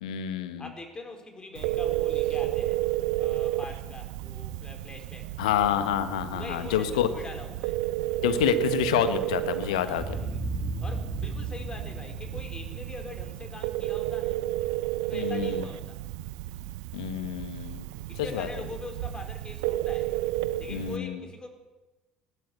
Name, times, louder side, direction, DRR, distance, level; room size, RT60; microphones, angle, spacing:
voice 1, 0.0-0.7 5.4-7.1 8.2-10.0 15.1-15.6 16.9-17.9 18.2-18.5 20.7-21.2, left 10 dB, 70° left, 10 dB, 1.5 m, -28 dB
voice 2, 0.6-2.8 3.2-5.4 6.3-7.8 9.7-10.4 10.8-14.4 15.1-16.0 18.1-20.1 20.6-21.5, left 2 dB, 20° left, 5 dB, 4.4 m, -43 dB
Telephone, 1.5-21.0, right 15 dB, 65° right, 0.7 m, -32 dB
Boom, 9.9-14.2, right 2 dB, 45° right, 4.0 m, -36 dB
19.5 x 16.5 x 8.5 m, 1.1 s
figure-of-eight pair, 60°, 4 cm